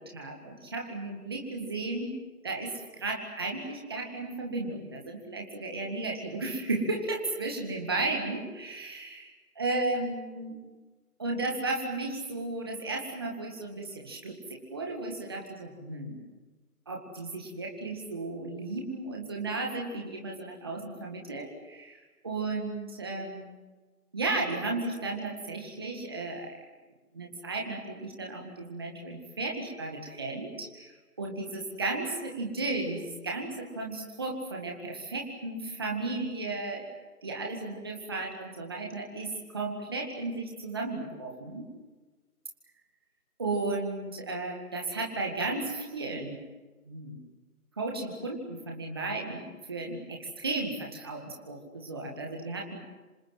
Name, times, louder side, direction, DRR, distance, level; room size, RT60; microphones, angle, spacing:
voice 1, 0.0-2.1 2.4-10.6 11.2-16.2 16.9-23.6 24.1-26.5 27.1-36.8 37.2-41.7 43.4-46.4 46.8-47.2 47.7-52.8, right 2 dB, 15° right, 0 dB, 1.9 m, -34 dB
27.5 x 26.5 x 7.6 m, 1.3 s
figure-of-eight pair, 170°, 45 cm